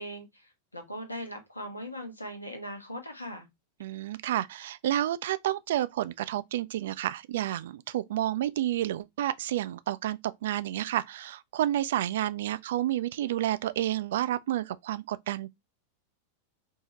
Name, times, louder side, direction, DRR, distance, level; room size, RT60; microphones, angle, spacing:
voice 1, 0.0-3.5, equal, 85° left, 1.0 m, -40 dB
voice 2, 3.8-15.5, right 13 dB, 55° right, 0.3 m, -30 dB
4.5 x 2.7 x 2.9 m
figure-of-eight pair, 90°, 0 cm